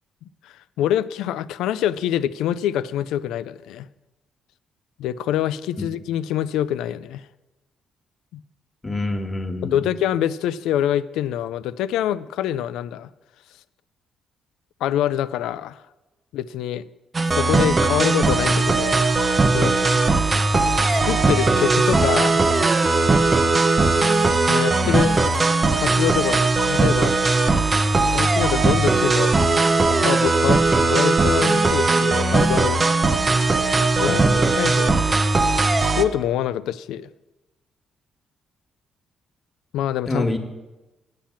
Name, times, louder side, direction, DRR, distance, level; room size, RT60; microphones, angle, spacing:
voice 1, 0.4-3.9 5.0-7.3 8.3-8.4 9.6-13.1 14.8-15.8 16.3-16.8 17.3-19.0 19.5-20.1 20.9-22.4 24.5-25.2 25.8-27.2 28.1-29.4 30.0-32.8 34.0-34.2 34.6-35.2 35.8-37.1 39.7-40.2, left 11 dB, 90° left, 15 dB, 0.4 m, -25 dB
voice 2, 8.8-9.8 24.8-25.0 34.0-34.4 40.1-40.4, left 2 dB, 20° left, 3 dB, 1.5 m, -26 dB
sound 1, 17.1-36.0, right 3 dB, 30° right, 0.8 m, -19 dB
8.8 x 7.5 x 7.2 m, 1.1 s
cardioid pair, 90°, 0 cm